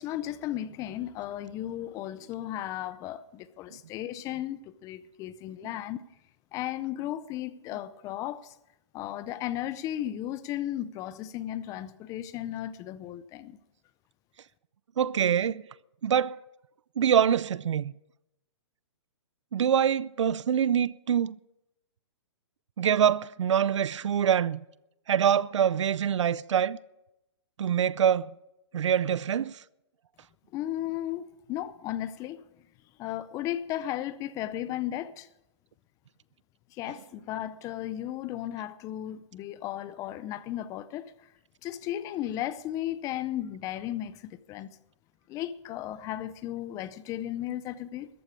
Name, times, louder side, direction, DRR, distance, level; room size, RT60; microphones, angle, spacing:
voice 1, 0.0-6.0 6.5-8.5 8.9-13.6 30.5-32.4 33.0-35.3 36.7-41.1 41.6-44.8 45.3-48.1, left 12 dB, 20° left, 0.6 m, -35 dB
voice 2, 15.0-15.6 16.0-16.4 17.0-17.9 19.5-21.4 22.8-24.6 25.1-26.8 27.6-28.3 28.7-29.5, right 9 dB, 80° right, 0.5 m, -25 dB
14.0 x 8.6 x 8.3 m
hypercardioid pair, 145°, 15 cm